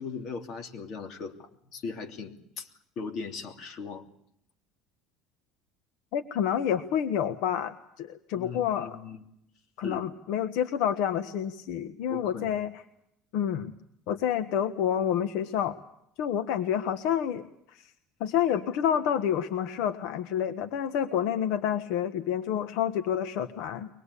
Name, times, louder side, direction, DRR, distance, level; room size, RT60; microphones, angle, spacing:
voice 1, 0.0-2.7 3.0-4.1 8.3-9.2 9.8-10.0 12.1-12.6 18.5-18.6, left 5 dB, 45° left, 4 dB, 3.0 m, -38 dB
voice 2, 6.1-9.0 9.8-12.7 13.3-13.7 14.1-15.8 16.2-17.9 18.2-23.9, left 9 dB, 75° left, 9 dB, 1.2 m, -28 dB
24.0 x 20.5 x 8.4 m, 0.74 s
cardioid pair, 145°, 0 cm